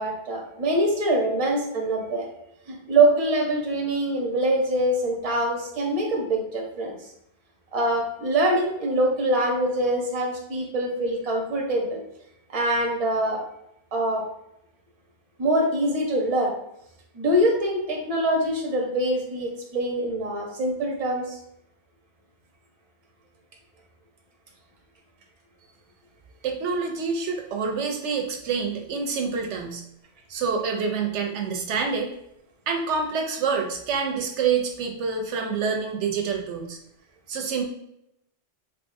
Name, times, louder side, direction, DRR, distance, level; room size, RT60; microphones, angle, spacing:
voice 1, 0.0-2.3 2.7-7.0 7.7-12.0 12.5-13.4 13.9-14.3 15.4-16.5 17.1-21.4, right 1 dB, 35° right, 0 dB, 0.8 m, -24 dB
voice 2, 26.4-29.8 30.3-32.1 32.7-36.8 37.3-37.6, right 5 dB, 90° right, 3 dB, 0.9 m, -27 dB
3.5 x 3.0 x 2.5 m, 0.80 s
omnidirectional pair, 1.2 m